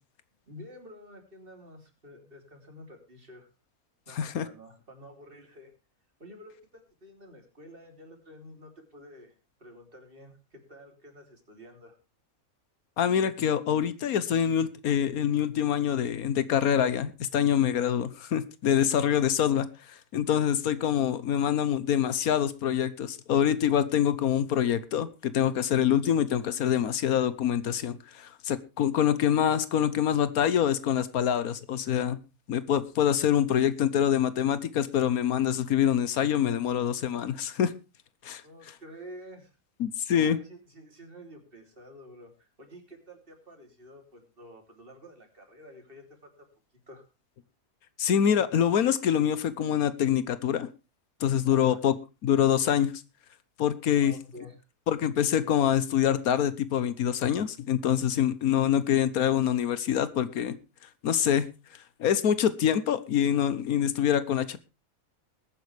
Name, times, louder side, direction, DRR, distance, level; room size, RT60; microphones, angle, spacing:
voice 1, 0.5-3.5 4.1-5.7 6.2-9.3 9.6-12.0 38.4-39.5 40.1-46.3 46.9-47.0 51.5-51.8 54.0-54.6, equal, 40° right, 3 dB, 3.4 m, -49 dB
voice 2, 4.1-4.5 13.0-32.2 32.5-37.7 38.2-38.4 39.8-40.4 48.0-50.7 51.2-51.9 52.2-52.9 53.6-54.1 54.9-60.6 61.0-61.5 62.0-64.6, left 9 dB, 90° left, 14 dB, 1.4 m, -25 dB
21.0 x 9.3 x 3.4 m, 0.30 s
omnidirectional pair, 1.5 m